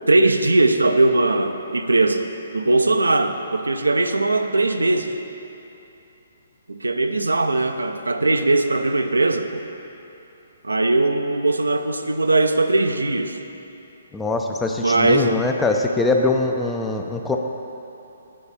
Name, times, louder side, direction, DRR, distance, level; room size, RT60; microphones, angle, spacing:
voice 1, 0.1-2.3 2.5-5.1 6.7-9.6 10.6-13.4 14.8-15.6, right 2 dB, 75° right, 7 dB, 0.5 m, -20 dB
voice 2, 14.1-17.4, left 3 dB, 10° left, 3 dB, 0.4 m, -22 dB
9.3 x 4.0 x 6.9 m, 2.9 s
figure-of-eight pair, 130°, 0 cm